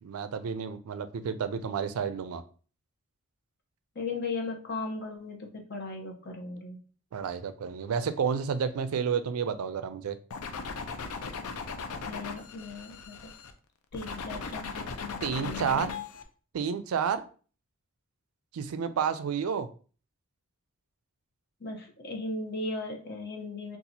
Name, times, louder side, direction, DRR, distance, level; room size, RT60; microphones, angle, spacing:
voice 1, 0.0-2.4 7.1-10.2 15.2-15.9 16.5-17.2 18.5-19.7, right 6 dB, 85° right, 12 dB, 0.4 m, -30 dB
voice 2, 3.9-6.8 12.1-13.3 13.9-16.0 21.6-23.8, left 3 dB, 50° left, 2 dB, 0.8 m, -37 dB
sound 1, 10.3-13.5 13.9-16.2, left 4 dB, 80° left, 0.5 m, -38 dB
2.8 x 2.4 x 4.0 m, 0.39 s
head